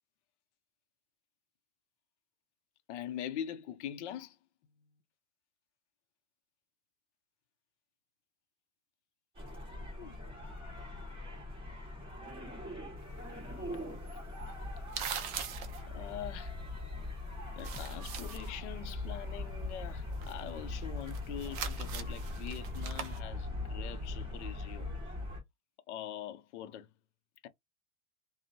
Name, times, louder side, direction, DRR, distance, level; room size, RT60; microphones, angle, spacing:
voice 1, 2.9-4.4 4.7-4.9 10.0-10.1 13.7-13.9 15.9-16.6 17.6-24.9 25.9-26.9 27.4-27.5, left 10 dB, 55° left, 0.6 m, -43 dB
sound 1, 9.3-25.4, left 2 dB, 10° right, 1.4 m, -41 dB
sound 2, 13.0-17.2 17.5-18.6 18.8-23.2, right 8 dB, 30° right, 0.4 m, -43 dB
2.6 x 2.1 x 2.6 m
supercardioid pair, 140°, 41 cm